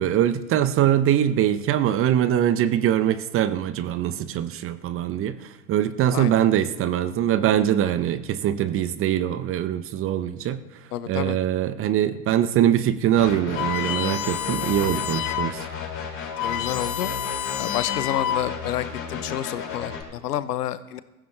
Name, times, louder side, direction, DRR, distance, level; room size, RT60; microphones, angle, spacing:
voice 1, 0.0-10.6 11.1-15.6, right 11 dB, 30° right, 14 dB, 0.7 m, -23 dB
voice 2, 10.9-11.4 16.4-17.1 17.6-21.0, left 12 dB, 75° left, 15 dB, 0.8 m, -29 dB
sound 1, 13.2-20.0, left 5 dB, 25° left, 3.9 m, -33 dB
sound 2, 13.6-15.6 15.9-16.0 16.2-18.7, left 10 dB, 50° left, 1.3 m, -29 dB
15.5 x 14.5 x 3.3 m, 1.0 s
hypercardioid pair, 95°, 47 cm